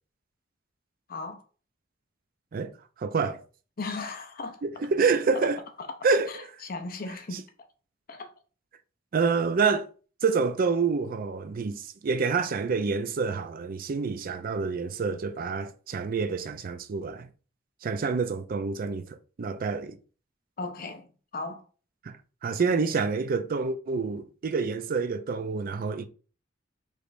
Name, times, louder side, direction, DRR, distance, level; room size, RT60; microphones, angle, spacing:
voice 1, 1.1-1.4 3.8-4.6 6.3-7.4 8.1-8.3 20.6-21.1 21.3-21.6, left 3 dB, 50° left, 0.6 m, -36 dB
voice 2, 3.0-3.4 4.6-5.6 6.0-6.3 7.3-7.4 9.1-9.9 10.2-17.3 17.8-19.0 19.4-20.0 22.0-22.2 22.4-26.1, right 4 dB, 50° right, 0.4 m, -27 dB
4.9 x 3.2 x 2.5 m
head